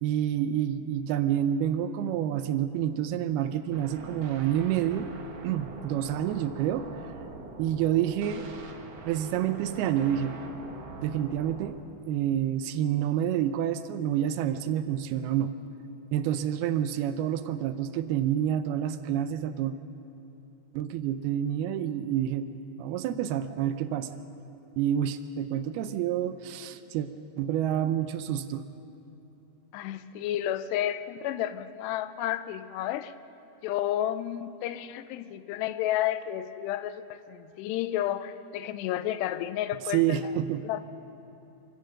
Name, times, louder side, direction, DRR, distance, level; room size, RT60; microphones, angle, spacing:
voice 1, 0.0-5.1 5.4-7.0 7.6-8.5 9.1-10.4 11.0-11.8 12.1-15.5 16.1-19.7 20.7-22.5 22.8-24.1 24.8-27.1 27.4-28.6 39.9-40.6, right 10 dB, 80° right, 10 dB, 2.4 m, -28 dB
sound 1, 3.7-11.7, right 3 dB, 55° right, 1.6 m, -43 dB
voice 2, 29.7-33.1 33.6-40.2 40.6-40.8, left 12 dB, 90° left, 12 dB, 2.8 m, -31 dB
26.0 x 15.5 x 6.5 m, 2.8 s
omnidirectional pair, 4.8 m